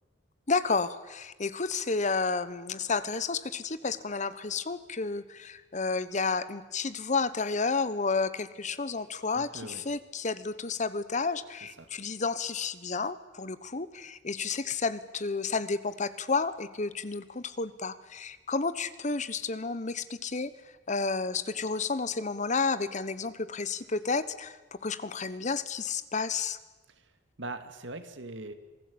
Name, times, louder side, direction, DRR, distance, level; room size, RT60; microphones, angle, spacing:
voice 1, 0.5-20.5 20.9-26.6, left 4 dB, 40° left, 15 dB, 1.1 m, -31 dB
voice 2, 9.3-9.8 11.8-11.9 26.9-27.1 27.4-28.5, right 2 dB, 75° right, 9 dB, 2.3 m, -41 dB
27.0 x 18.5 x 8.7 m, 1.2 s
head